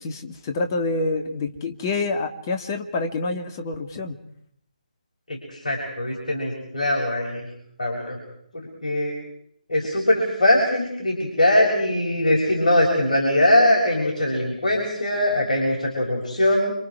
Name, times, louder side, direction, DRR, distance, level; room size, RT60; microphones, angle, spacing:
voice 1, 0.0-4.2, left 3 dB, 25° left, 5 dB, 2.1 m, -27 dB
voice 2, 5.3-7.4 7.8-8.2 8.8-9.1 9.7-16.7, left 1 dB, 60° left, -2 dB, 6.7 m, -21 dB
29.5 x 25.5 x 4.8 m, 0.70 s
figure-of-eight pair, 145°, 4 cm